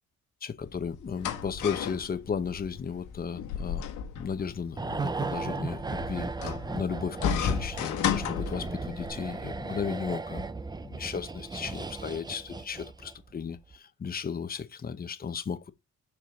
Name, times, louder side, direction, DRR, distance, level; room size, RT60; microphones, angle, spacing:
voice 1, 0.4-3.8 4.1-10.5 10.8-15.7, left 6 dB, 30° left, 0.9 m, -35 dB
sound 1, 0.6-9.1, left 8 dB, 85° left, 1.9 m, -34 dB
sound 2, 4.8-13.3 13.6-13.8, right 4 dB, 15° right, 0.5 m, -36 dB
7.7 x 5.0 x 3.7 m
cardioid pair, 90°, 30 cm